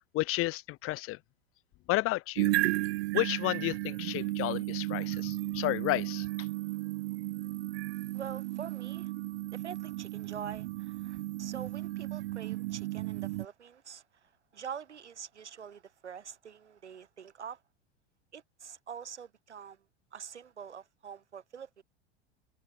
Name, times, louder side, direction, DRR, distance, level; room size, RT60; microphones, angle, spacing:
voice 1, 0.1-1.2 1.9-2.5 3.1-6.3, left 19 dB, 40° left, 1.0 m, -32 dB
sound 1, 2.4-13.5, right 18 dB, 65° right, 0.8 m, -34 dB
voice 2, 8.1-9.1 9.5-17.6 18.3-19.8 20.1-21.8, right 7 dB, 85° right, 3.9 m, -45 dB
hypercardioid pair, 95°, 34 cm